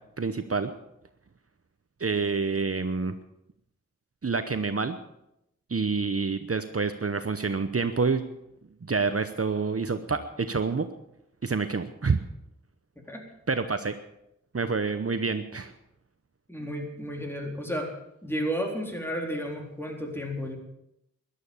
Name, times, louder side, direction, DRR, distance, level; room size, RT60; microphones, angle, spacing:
voice 1, 0.2-0.7 2.0-3.1 4.2-5.0 5.7-8.2 8.8-10.9 11.4-12.2 13.5-13.9 14.5-15.7, right 4 dB, 50° right, 9 dB, 0.9 m, -27 dB
voice 2, 16.5-17.9 18.2-20.6, equal, 10° left, 1 dB, 4.0 m, -32 dB
15.0 x 11.5 x 7.2 m, 0.84 s
wide cardioid pair, 50°, 30 cm